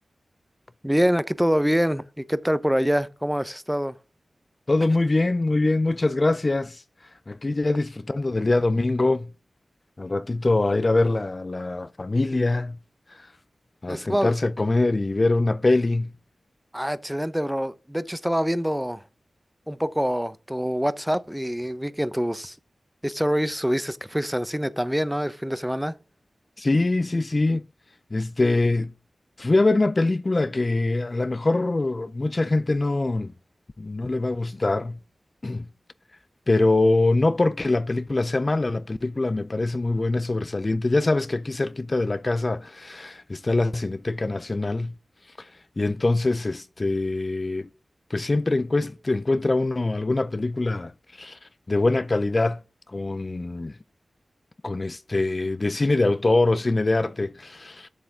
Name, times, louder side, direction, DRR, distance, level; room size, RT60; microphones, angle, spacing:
voice 1, 0.8-3.9 13.9-14.3 16.7-19.0 19.7-22.6 23.0-25.9, equal, 5° right, 0.7 m, -25 dB
voice 2, 4.7-6.8 7.3-9.3 10.0-12.8 13.2-13.3 13.8-16.1 26.6-27.7 28.1-28.9 29.4-33.3 33.8-35.0 35.4-35.7 36.5-44.9 45.4-45.5 45.8-47.7 48.1-50.9 51.2-51.4 51.7-52.6 52.9-53.7 54.6-57.9, left 2 dB, 45° left, 0.4 m, -23 dB
7.6 x 6.9 x 3.6 m
cardioid pair, 40°, 0 cm